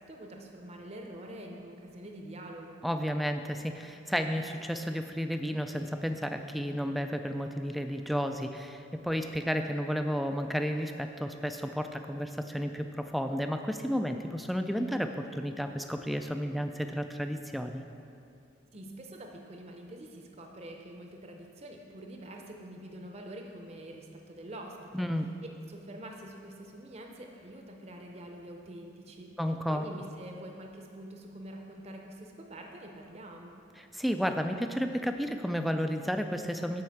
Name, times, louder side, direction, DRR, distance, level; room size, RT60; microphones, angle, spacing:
voice 1, 0.0-2.8 18.7-25.1 25.7-29.3 29.7-33.6, right 1 dB, 35° right, 1 dB, 0.7 m, -46 dB
voice 2, 2.8-17.8 24.9-25.3 29.4-29.8 33.8-36.8, equal, ahead, 6 dB, 0.3 m, -32 dB
7.6 x 5.5 x 7.1 m, 2.6 s
head